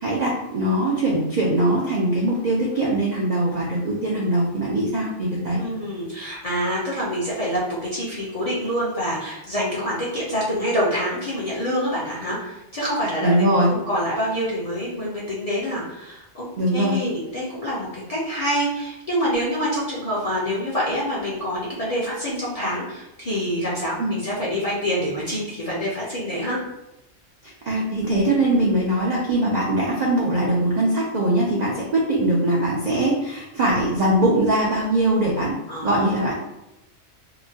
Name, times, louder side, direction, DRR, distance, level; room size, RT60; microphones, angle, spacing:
voice 1, 0.0-5.6 13.2-13.7 16.6-17.0 24.0-24.1 27.6-35.6 35.8-36.3, right 1 dB, 70° right, -4 dB, 0.4 m, -21 dB
voice 2, 5.6-16.4 16.7-26.6 35.7-36.2, equal, 45° left, -7 dB, 0.5 m, -26 dB
2.8 x 2.1 x 2.7 m, 0.91 s
omnidirectional pair, 1.3 m